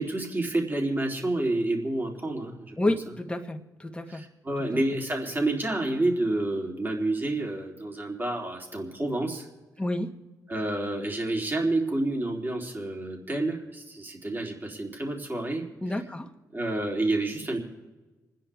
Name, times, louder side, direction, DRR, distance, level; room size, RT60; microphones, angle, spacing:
voice 1, 0.0-2.9 4.1-9.5 10.5-15.6 16.5-17.6, right 2 dB, 30° right, 0 dB, 3.6 m, -29 dB
voice 2, 2.8-4.2 4.7-4.8 9.8-10.1 15.8-16.3, left 1 dB, 15° left, 4 dB, 1.7 m, -30 dB
28.5 x 10.0 x 3.6 m, 1.2 s
cardioid pair, 65°, 7 cm